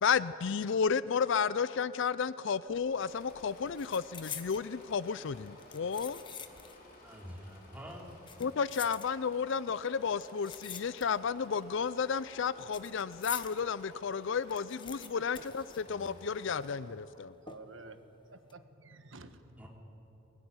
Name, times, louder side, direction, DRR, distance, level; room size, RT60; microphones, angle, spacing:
voice 1, 0.0-6.2 8.4-15.6 15.9-17.3, left 6 dB, 65° left, 17 dB, 0.4 m, -32 dB
sound 1, 2.7-3.0 3.3-4.7 5.5-6.9 7.2-7.3 8.1-9.5 10.2-11.4 11.6-13.6 14.0-14.1 14.3-16.4 16.7-16.8 17.5-17.9 18.3-18.5, left 7 dB, 25° left, 1.0 m, -46 dB
Engine / Mechanisms, 2.8-17.0, left 1 dB, 45° left, 3.9 m, -56 dB
voice 2, 7.0-8.1 15.8-16.3 19.6-19.7, equal, 10° right, -1 dB, 3.2 m, -48 dB
voice 3, 17.1-18.0 18.3-19.7, right 3 dB, 65° right, 9 dB, 1.4 m, -51 dB
21.5 x 17.5 x 9.7 m, 3.0 s
head